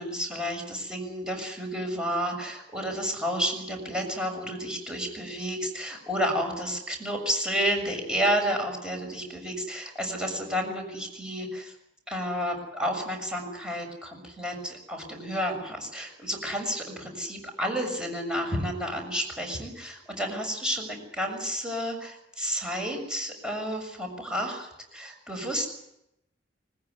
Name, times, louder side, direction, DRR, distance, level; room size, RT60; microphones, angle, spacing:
voice 1, 0.0-11.7 12.1-25.7, equal, 5° right, 2 dB, 6.8 m, -31 dB
20.5 x 20.0 x 9.6 m, 0.83 s
head